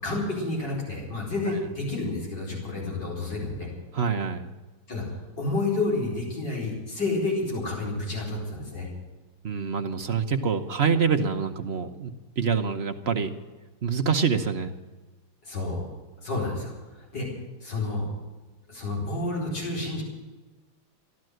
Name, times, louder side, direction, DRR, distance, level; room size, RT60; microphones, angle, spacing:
voice 1, 0.0-3.7 4.9-5.0 5.4-8.9 15.4-15.8 16.2-17.2 17.6-18.1 18.7-20.0, left 2 dB, 55° left, -2 dB, 5.2 m, -30 dB
voice 2, 3.9-4.5 9.4-13.3 13.8-14.7, right 6 dB, 50° right, 5 dB, 0.8 m, -26 dB
15.0 x 12.0 x 7.8 m, 1.2 s
omnidirectional pair, 2.2 m